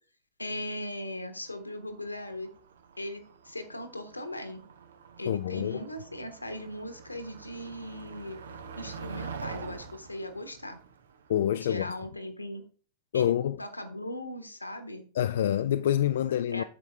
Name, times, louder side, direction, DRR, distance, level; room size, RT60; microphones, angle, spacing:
voice 1, 0.4-2.5 3.0-4.6 5.2-8.4 8.8-10.8 11.6-12.6 13.1-15.1 16.5-16.6, left 1 dB, 85° left, 1.2 m, -38 dB
Motor vehicle (road), 1.5-11.9, right 5 dB, 65° right, 0.8 m, -46 dB
voice 2, 5.3-5.8 11.3-11.9 13.1-13.6 15.1-16.6, left 11 dB, 60° left, 0.3 m, -27 dB
8.7 x 7.1 x 3.4 m
figure-of-eight pair, 90°, 0 cm